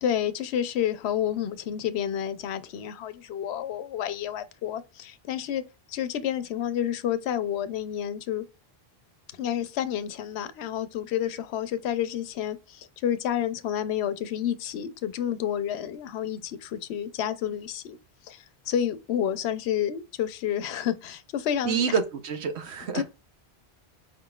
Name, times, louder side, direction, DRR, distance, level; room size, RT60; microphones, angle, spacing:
voice 1, 0.0-8.5 9.3-18.0 18.2-22.0 22.9-23.0, left 10 dB, 85° left, 0.8 m, -30 dB
voice 2, 21.6-23.0, right 6 dB, 85° right, 1.1 m, -27 dB
4.8 x 3.8 x 2.3 m
omnidirectional pair, 1.1 m